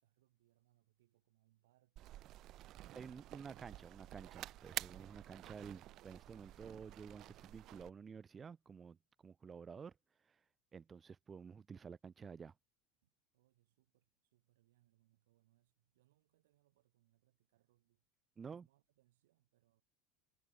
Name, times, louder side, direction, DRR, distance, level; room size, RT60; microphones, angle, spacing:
voice 1, 0.0-3.5 13.0-18.1 18.4-19.8, right 16 dB, 80° right, 7.9 m, -78 dB
sound 1, 2.0-7.9, right 15 dB, 50° right, 0.9 m, -50 dB
voice 2, 2.9-9.0 9.2-9.9 10.7-12.5 18.4-18.7, right 6 dB, 25° right, 1.0 m, -51 dB
supercardioid pair, 100°, 0 cm